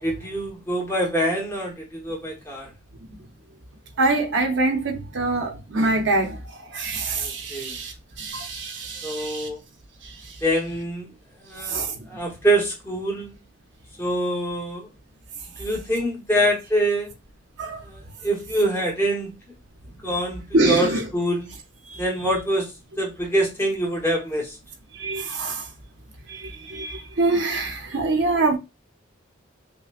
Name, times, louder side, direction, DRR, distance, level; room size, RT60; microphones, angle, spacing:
voice 1, 0.0-2.7 7.1-7.8 9.0-9.6 10.4-11.1 11.4-13.3 14.0-14.9 15.6-17.1 17.8-19.3 20.0-21.5 22.0-22.7 23.0-24.6, right 1 dB, 10° left, 1.0 m, -25 dB
voice 2, 4.0-9.5 10.0-10.4 11.6-12.2 17.6-17.8 20.5-21.0 21.9-22.0 24.9-25.7 26.3-28.6, right 2 dB, 60° right, 0.8 m, -25 dB
5.6 x 2.2 x 2.4 m
head